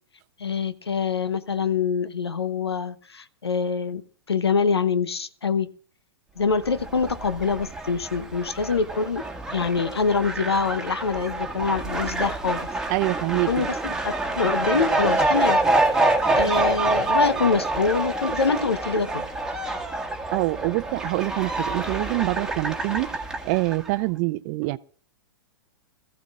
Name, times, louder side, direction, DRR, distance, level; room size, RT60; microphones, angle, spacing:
voice 1, 0.4-4.0 4.3-5.7 6.4-9.2 9.5-12.7 13.5-15.6 15.9-19.3, left 5 dB, 90° left, 1.0 m, -25 dB
Fowl, 6.5-23.9, right 2 dB, 5° right, 1.8 m, -26 dB
voice 2, 12.9-13.7 20.3-23.2 23.4-24.8, right 21 dB, 40° right, 0.5 m, -25 dB
22.5 x 15.0 x 2.4 m
hypercardioid pair, 110°, 13 cm